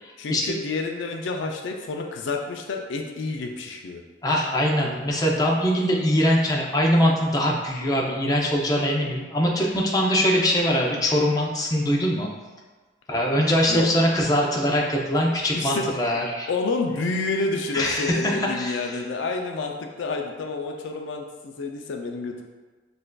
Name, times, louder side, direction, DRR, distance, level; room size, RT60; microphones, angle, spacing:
voice 1, 0.2-4.0 13.7-13.9 15.5-15.8 16.5-22.4, left 3 dB, 70° left, 2 dB, 0.4 m, -29 dB
voice 2, 4.2-12.3 13.1-16.5 17.7-18.8, equal, 20° left, -2 dB, 0.5 m, -22 dB
6.4 x 2.5 x 2.3 m, 1.3 s
head